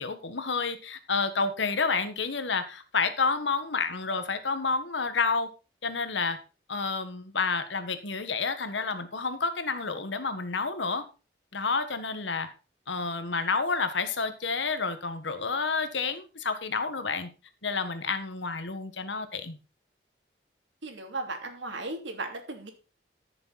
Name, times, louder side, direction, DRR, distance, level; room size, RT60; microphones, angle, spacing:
voice 1, 0.0-5.5 5.8-6.4 6.7-11.1 11.5-12.5 12.9-17.3 17.6-19.6, left 4 dB, 85° left, 10 dB, 1.5 m, -29 dB
voice 2, 20.8-22.7, right 2 dB, 90° right, 4 dB, 2.9 m, -36 dB
14.0 x 7.0 x 4.1 m, 0.32 s
head